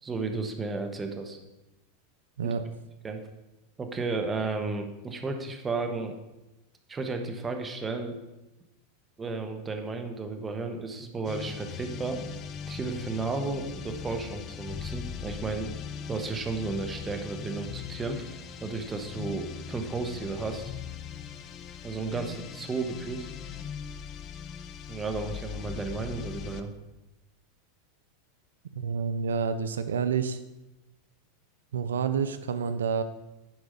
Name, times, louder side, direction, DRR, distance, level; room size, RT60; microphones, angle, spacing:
voice 1, 0.0-1.4 2.4-2.5 3.0-3.2 3.8-6.1 6.9-8.2 9.2-12.2 12.7-15.7 16.1-18.3 18.6-20.7 21.8-23.3 24.9-26.7, right 3 dB, 20° right, 6 dB, 1.3 m, -33 dB
sound 1, 11.2-26.7, left 7 dB, 40° left, 0.7 m, -40 dB
voice 2, 28.8-30.4 31.7-33.0, right 6 dB, 90° right, 12 dB, 0.5 m, -28 dB
10.5 x 4.7 x 5.2 m, 0.99 s
hypercardioid pair, 110°, 0 cm